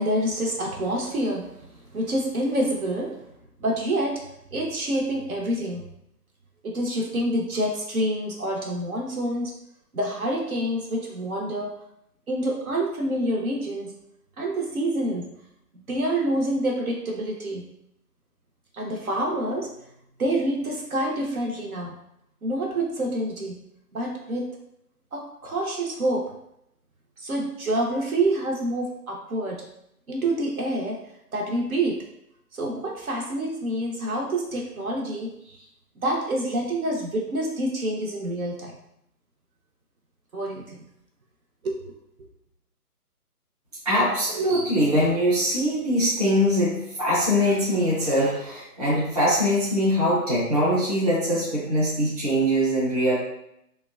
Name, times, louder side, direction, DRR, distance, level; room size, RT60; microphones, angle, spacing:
voice 1, 0.0-3.2 3.6-4.2 4.5-5.9 6.6-9.5 9.9-11.7 12.3-13.9 14.4-15.3 15.9-17.7 18.7-19.7 20.2-21.9 22.4-23.6 23.9-24.5 25.1-26.3 27.2-29.6 30.1-31.0 31.3-32.0 32.5-35.7 36.0-38.8 40.3-40.8 41.6-41.9, right 1 dB, 60° right, -1 dB, 0.7 m, -27 dB
voice 2, 43.8-53.1, equal, 25° right, -9 dB, 0.6 m, -22 dB
3.3 x 2.2 x 2.3 m, 0.78 s
hypercardioid pair, 165°, 47 cm